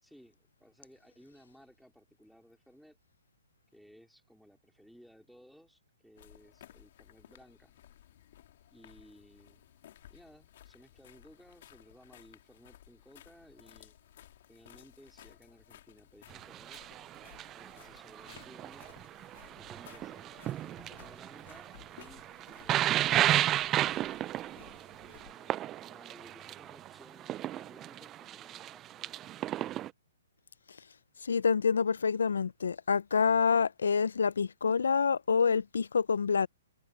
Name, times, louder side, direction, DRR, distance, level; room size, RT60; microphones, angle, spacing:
voice 1, 0.0-3.0 3.7-7.7 8.7-9.6 10.1-13.9 14.5-16.8 17.5-18.9 19.6-23.6 25.2-29.5, equal, ahead, 3.9 m, -59 dB
sound 1, 6.1-25.3, left 12 dB, 55° left, 2.7 m, -58 dB
sound 2, 16.3-29.9, right 13 dB, 20° right, 0.3 m, -33 dB
voice 2, 31.2-36.5, left 5 dB, 85° left, 0.4 m, -27 dB
hypercardioid pair, 155°, 0 cm